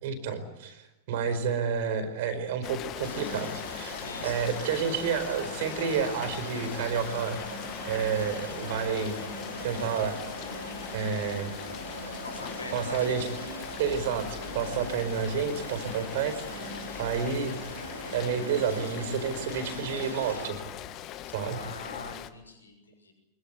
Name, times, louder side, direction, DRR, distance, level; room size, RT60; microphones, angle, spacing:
voice 1, 0.0-4.0 4.2-9.2 9.6-10.2 10.9-11.5 12.7-13.3 13.8-17.6 18.1-20.6 21.3-21.6, right 6 dB, 55° right, 10 dB, 4.7 m, -30 dB
Rain, 2.6-22.3, left 12 dB, 35° left, 1.6 m, -40 dB
sound 1, 3.0-22.1, right 2 dB, 80° right, 5.6 m, -41 dB
voice 2, 3.9-4.8 12.2-13.3 21.4-23.1, left 2 dB, 75° left, 4 dB, 6.2 m, -43 dB
24.5 x 22.5 x 8.4 m, 0.92 s
figure-of-eight pair, 90°, 0 cm